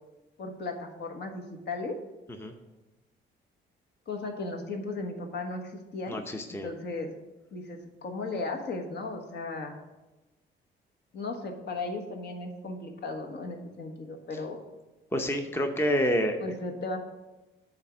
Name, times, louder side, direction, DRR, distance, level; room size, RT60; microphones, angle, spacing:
voice 1, 0.4-2.0 4.1-6.2 6.6-7.1 7.5-9.8 11.1-14.6 16.4-17.0, left 3 dB, 60° left, 3 dB, 1.3 m, -36 dB
voice 2, 6.1-6.7 15.1-16.5, equal, 10° left, 5 dB, 0.7 m, -28 dB
9.0 x 3.5 x 6.2 m, 1.1 s
cardioid pair, 90°, 20 cm